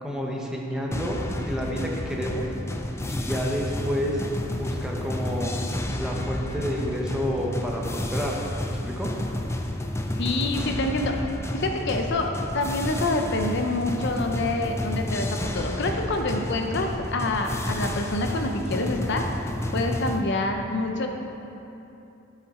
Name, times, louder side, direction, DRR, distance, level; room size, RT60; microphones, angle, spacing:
voice 1, 0.0-2.5 3.1-4.2 4.6-5.5 6.0-8.4 8.7-9.1, equal, 5° right, -2 dB, 0.9 m, -29 dB
sound 1, 0.9-20.2, left 1 dB, 15° left, 0.5 m, -31 dB
voice 2, 10.2-11.2 11.5-19.2 19.7-21.1, left 2 dB, 60° left, 3 dB, 0.7 m, -27 dB
13.0 x 5.7 x 4.2 m, 2.9 s
head